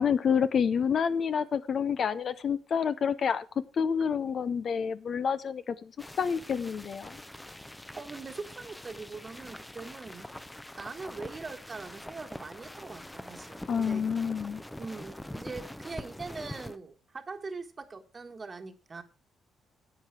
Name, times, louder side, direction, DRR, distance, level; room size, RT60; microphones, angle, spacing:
voice 1, 0.0-3.5 3.7-5.9 6.2-7.2 13.7-14.6, left 7 dB, 55° left, 0.7 m, -28 dB
sound 1, 6.0-16.8, left 1 dB, 10° left, 0.7 m, -44 dB
voice 2, 8.0-10.3 10.8-14.0 14.8-19.0, right 4 dB, 30° right, 1.4 m, -42 dB
10.5 x 7.6 x 4.7 m
cardioid pair, 90°, 0 cm